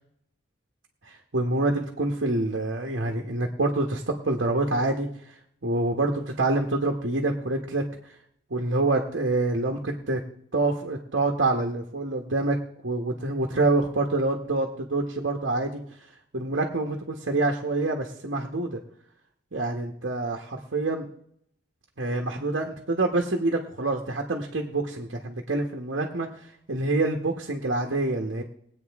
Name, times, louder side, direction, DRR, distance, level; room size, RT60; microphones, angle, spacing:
voice 1, 1.0-8.1 8.5-10.2 10.5-12.6 12.8-15.8 16.3-18.8 19.5-21.1 22.0-28.4, right 2 dB, 70° right, 1 dB, 1.2 m, -26 dB
21.0 x 8.5 x 3.5 m, 0.70 s
head